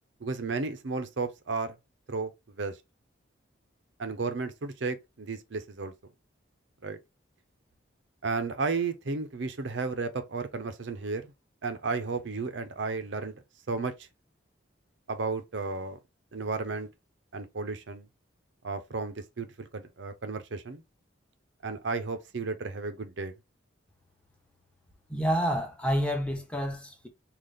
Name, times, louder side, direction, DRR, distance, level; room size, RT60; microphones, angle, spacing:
voice 1, 0.2-1.8 2.1-2.3 2.6-2.8 4.0-5.9 6.8-7.0 8.2-11.3 11.6-13.3 13.7-14.1 15.1-16.0 16.3-16.9 17.3-18.1 18.6-20.8 21.6-23.3, right 4 dB, 65° right, 0.6 m, -33 dB
voice 2, 25.1-27.1, equal, 5° left, 0.8 m, -29 dB
3.9 x 2.4 x 3.3 m
head